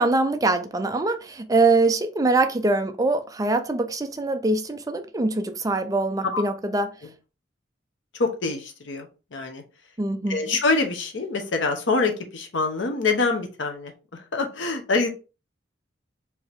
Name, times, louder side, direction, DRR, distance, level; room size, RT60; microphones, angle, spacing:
voice 1, 0.0-6.9 10.0-10.4, right 3 dB, 20° right, 0.4 m, -23 dB
voice 2, 8.1-9.6 10.3-15.1, left 3 dB, 90° left, 1.0 m, -25 dB
4.6 x 2.8 x 3.4 m
head